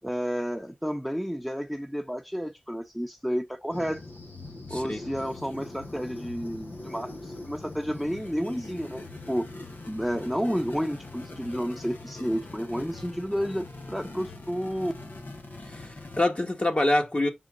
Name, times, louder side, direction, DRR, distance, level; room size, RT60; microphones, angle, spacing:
voice 1, 0.0-4.0 4.7-9.5 9.9-14.9, equal, ahead, 0.9 m, -31 dB
sound 1, 3.7-16.2, left 2 dB, 80° left, 1.5 m, -42 dB
voice 2, 4.7-5.0 15.6-17.3, left 1 dB, 40° left, 1.9 m, -26 dB
6.2 x 4.3 x 3.8 m
wide cardioid pair, 45°, 3 cm